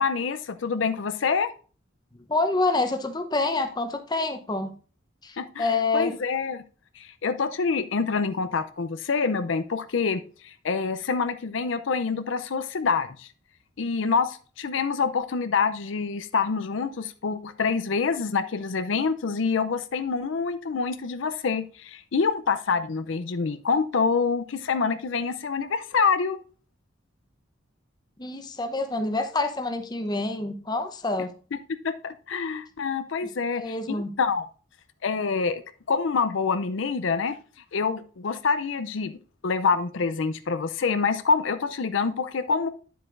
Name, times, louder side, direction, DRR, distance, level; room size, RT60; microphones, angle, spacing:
voice 1, 0.0-1.5 5.4-5.7 5.9-6.6 7.0-13.3 13.8-26.4 31.7-34.4 35.0-35.6 35.9-37.4 37.7-39.1 39.4-42.7, left 5 dB, 75° left, 10 dB, 0.5 m, -26 dB
voice 2, 2.1-4.7 5.2-6.1 28.2-31.3 33.6-34.1, left 3 dB, 20° left, 7 dB, 0.8 m, -27 dB
9.9 x 7.6 x 2.5 m, 0.39 s
head